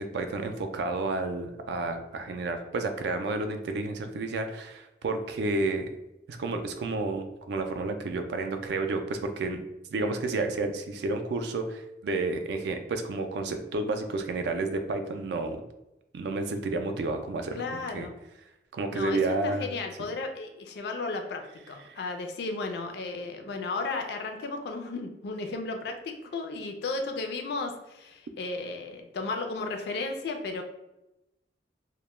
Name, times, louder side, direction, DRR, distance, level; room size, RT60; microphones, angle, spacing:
voice 1, 0.1-5.9 6.3-9.6 9.9-15.6 16.1-18.1 18.7-19.7 21.9-22.0, right 3 dB, 65° right, 7 dB, 0.3 m, -31 dB
voice 2, 17.5-18.1 18.9-30.6, left 3 dB, 65° left, 4 dB, 0.4 m, -34 dB
2.1 x 2.1 x 3.0 m, 0.92 s
head